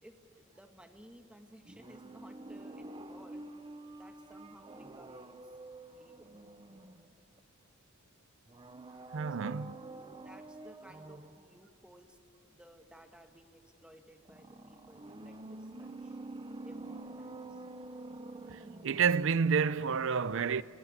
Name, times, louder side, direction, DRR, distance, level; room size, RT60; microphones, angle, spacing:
voice 1, 0.0-3.4 3.9-5.4 5.9-6.3 9.4-9.7 10.2-12.2 12.5-16.2 16.6-17.6, equal, 5° right, 1.4 m, -58 dB
sound 1, 1.7-7.4 8.5-11.5 14.3-19.5 19.7-19.8, right 2 dB, 20° right, 0.7 m, -47 dB
voice 2, 9.1-9.7 18.5-20.6, right 6 dB, 60° right, 0.5 m, -29 dB
26.5 x 16.5 x 9.5 m
head